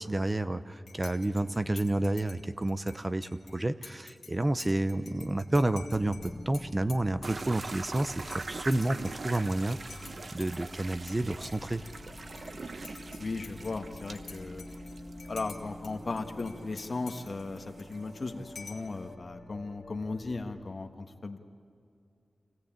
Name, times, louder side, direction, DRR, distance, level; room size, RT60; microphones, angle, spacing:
voice 1, 0.0-9.8 10.3-11.8, right 1 dB, 25° right, 11 dB, 0.7 m, -30 dB
Dishes pots and pans / Cutlery silverware / Chink clink, 0.9-11.2 11.4-12.5 12.8-15.9 16.2-18.2 18.6-18.9, left 5 dB, 90° left, 2.0 m, -50 dB
sound 1, 6.0-20.7, left 1 dB, 30° left, 1.9 m, -48 dB
sound 2, 7.2-19.1, right 3 dB, 55° right, 0.9 m, -44 dB
voice 2, 13.2-14.6 15.3-21.4, left 3 dB, 50° left, 6 dB, 1.5 m, -36 dB
26.0 x 17.0 x 8.9 m, 2.5 s
wide cardioid pair, 75°, 0 cm